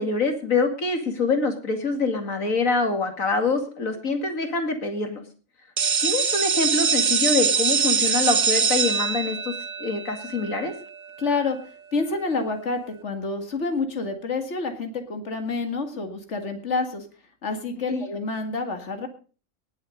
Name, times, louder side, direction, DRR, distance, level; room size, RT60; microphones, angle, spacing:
voice 1, 0.0-5.2 6.0-10.7 17.9-18.0, left 3 dB, 85° left, 6 dB, 2.7 m, -25 dB
sound 1, 5.8-11.4, right 6 dB, 40° right, 0.8 m, -24 dB
voice 2, 11.2-11.6 11.9-17.1 17.4-19.1, left 3 dB, 60° left, 5 dB, 2.3 m, -28 dB
19.0 x 7.7 x 5.2 m, 0.39 s
omnidirectional pair, 1.4 m